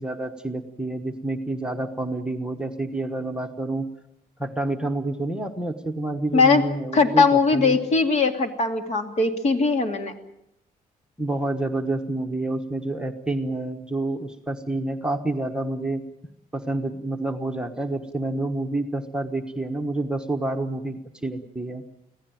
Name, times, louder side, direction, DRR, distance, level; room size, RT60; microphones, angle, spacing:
voice 1, 0.0-3.9 4.4-7.8 11.2-16.1 16.5-21.8, right 2 dB, 5° right, 3 dB, 1.2 m, -28 dB
voice 2, 6.9-10.1, left 4 dB, 45° left, 7 dB, 2.5 m, -20 dB
25.5 x 16.5 x 9.2 m, 0.81 s
cardioid pair, 160°, 15 cm